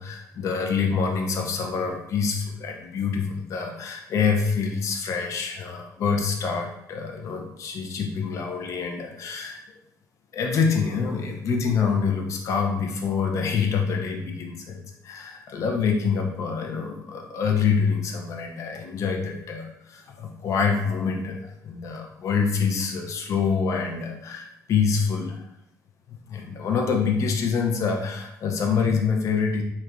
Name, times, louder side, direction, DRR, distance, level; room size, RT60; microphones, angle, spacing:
voice 1, 0.0-9.6 10.3-25.4 26.1-29.6, left 5 dB, 50° left, 3 dB, 0.4 m, -26 dB
2.9 x 2.2 x 2.4 m, 0.80 s
cardioid pair, 150°, 7 cm